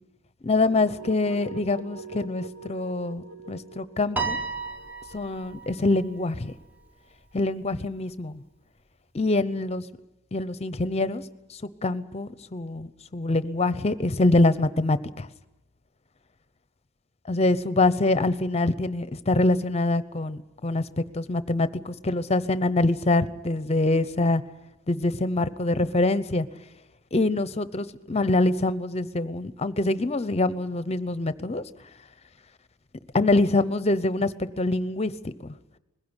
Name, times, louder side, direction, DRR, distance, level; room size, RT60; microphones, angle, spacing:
voice 1, 0.4-4.4 5.1-6.5 7.3-8.4 9.1-9.8 10.3-11.2 11.8-15.3 17.3-20.8 21.1-24.4 24.9-26.5 27.1-31.6 33.1-35.5, left 2 dB, 30° left, 14 dB, 0.8 m, -25 dB
sound 1, 0.6-6.5, right 3 dB, 70° right, 1.3 m, -43 dB
Piano, 4.2-6.6, right 4 dB, 10° right, 1.0 m, -33 dB
21.0 x 16.0 x 9.8 m, 0.97 s
head